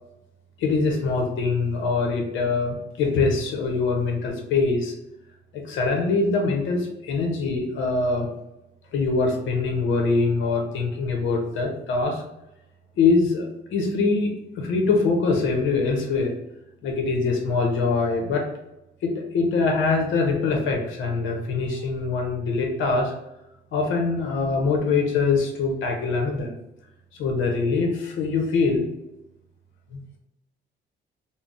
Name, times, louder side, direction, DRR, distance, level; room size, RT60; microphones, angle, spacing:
voice 1, 0.6-4.9 5.5-8.3 8.9-12.2 13.0-16.3 16.8-18.4 19.0-23.1 23.7-26.5 27.1-28.9 29.9-30.2, left 4 dB, 80° left, 2 dB, 0.7 m, -23 dB
3.7 x 2.0 x 2.4 m, 0.89 s
cardioid pair, 90°, 20 cm